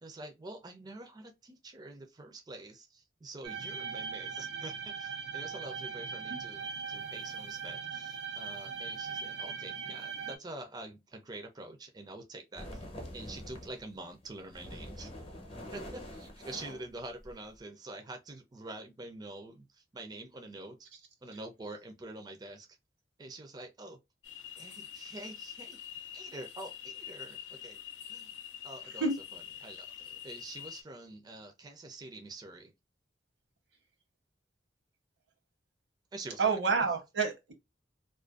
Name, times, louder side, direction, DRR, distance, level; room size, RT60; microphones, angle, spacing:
voice 1, 0.0-12.8 13.1-15.1 15.7-20.9 21.2-22.7 23.2-24.0 24.6-25.8 26.1-27.8 28.1-28.3 28.6-32.7 36.1-36.6, right 2 dB, 20° right, 0.4 m, -46 dB
sound 1, 3.4-10.4, right 6 dB, 70° right, 0.6 m, -40 dB
sound 2, 12.6-13.8 14.2-17.6, equal, 35° left, 0.7 m, -45 dB
sound 3, 24.2-30.8, left 10 dB, 90° left, 0.4 m, -46 dB
voice 2, 36.4-37.5, right 4 dB, 85° right, 0.9 m, -28 dB
2.4 x 2.2 x 2.3 m
head